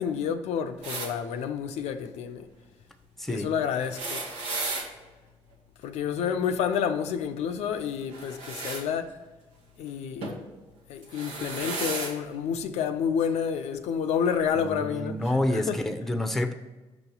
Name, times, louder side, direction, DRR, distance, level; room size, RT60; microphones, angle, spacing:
voice 1, 0.0-2.5 3.3-4.2 5.8-9.1 9.8-10.3 10.9-15.8, left 7 dB, 80° left, 0.4 m, -29 dB
sound 1, 0.8-1.1 3.7-4.9 8.1-8.8 10.2-10.4 11.0-12.1 13.2-13.3 14.5-14.6, right 3 dB, 85° right, 1.2 m, -34 dB
voice 2, 3.2-3.5 14.5-16.5, left 1 dB, ahead, 0.7 m, -28 dB
6.1 x 3.0 x 5.4 m
cardioid pair, 70°, 11 cm